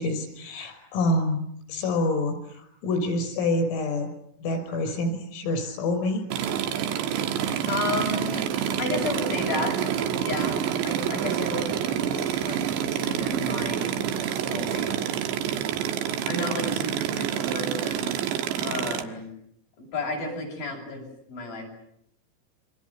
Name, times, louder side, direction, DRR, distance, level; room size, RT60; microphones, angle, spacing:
voice 1, 0.0-4.1 4.4-6.2, left 2 dB, 80° left, 7 dB, 8.3 m, -27 dB
sound 1, 6.3-19.0, right 9 dB, 65° right, 3.5 m, -28 dB
voice 2, 7.7-8.5 8.8-9.8 10.2-15.0 16.3-18.2 18.6-19.3 19.8-21.0 21.3-21.6, left 2 dB, 45° left, 1 dB, 9.1 m, -32 dB
29.0 x 25.0 x 8.2 m, 0.73 s
omnidirectional pair, 5.9 m